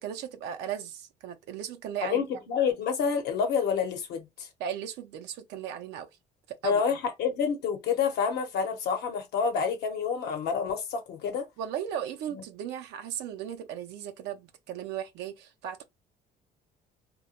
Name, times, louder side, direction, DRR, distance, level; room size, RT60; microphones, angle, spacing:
voice 1, 0.0-2.2 4.6-6.1 6.5-7.0 11.6-15.8, right 9 dB, 85° right, 0.4 m, -36 dB
voice 2, 2.0-4.5 6.6-11.5 12.3-12.4, left 6 dB, 75° left, 0.8 m, -28 dB
2.1 x 2.0 x 2.8 m
cardioid pair, 110°, 17 cm